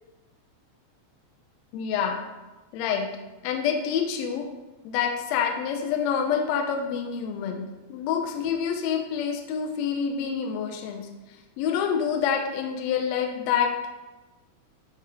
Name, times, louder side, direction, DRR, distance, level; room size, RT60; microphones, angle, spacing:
voice 1, 1.7-2.2 2.7-3.1 3.4-4.5 4.8-11.1 11.6-13.8, left 7 dB, 80° left, 4 dB, 1.7 m, -27 dB
9.3 x 3.5 x 3.5 m, 1.1 s
omnidirectional pair, 3.3 m